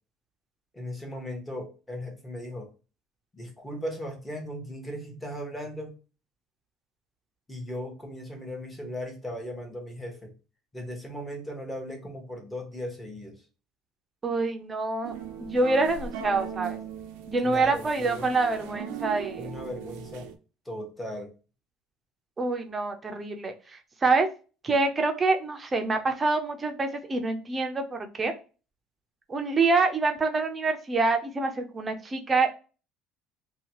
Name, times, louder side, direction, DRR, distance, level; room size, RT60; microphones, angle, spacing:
voice 1, 0.7-2.7 3.3-5.9 7.5-10.3 10.7-13.3 17.4-18.3 19.4-20.3 20.6-21.3, equal, 10° left, 2 dB, 1.0 m, -37 dB
voice 2, 14.2-16.8 17.3-19.5 22.4-24.3 24.6-28.3 29.3-32.5, right 3 dB, 25° right, 5 dB, 0.6 m, -26 dB
sound 1, 15.0-20.4, right 8 dB, 85° right, 0.5 m, -38 dB
2.8 x 2.2 x 2.8 m, 0.33 s
supercardioid pair, 110°, 0 cm